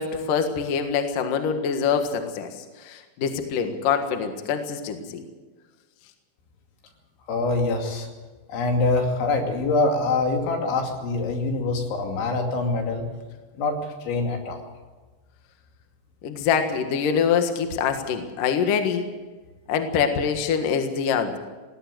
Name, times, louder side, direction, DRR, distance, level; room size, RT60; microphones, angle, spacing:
voice 1, 0.0-2.5 2.8-5.2 16.2-19.1 19.7-21.4, left 6 dB, 60° left, 6 dB, 2.7 m, -24 dB
voice 2, 7.3-8.1 8.5-13.1 13.6-14.6, left 3 dB, 75° left, 3 dB, 5.0 m, -24 dB
19.0 x 17.0 x 8.0 m, 1.3 s
omnidirectional pair, 5.4 m